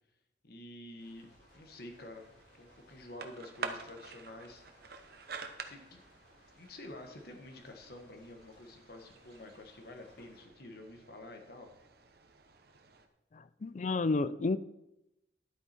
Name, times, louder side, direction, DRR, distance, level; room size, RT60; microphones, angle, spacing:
voice 1, 0.4-1.3 1.5-2.3 2.6-4.6 5.7-6.0 6.5-11.7, left 1 dB, 60° left, 1.6 m, -49 dB
sound 1, 0.9-13.1, right 4 dB, 60° right, 1.0 m, -49 dB
sound 2, 1.0-10.4, left 1 dB, 75° left, 4.4 m, -64 dB
voice 2, 13.3-14.6, left 3 dB, 40° left, 0.4 m, -31 dB
11.5 x 8.3 x 4.4 m
head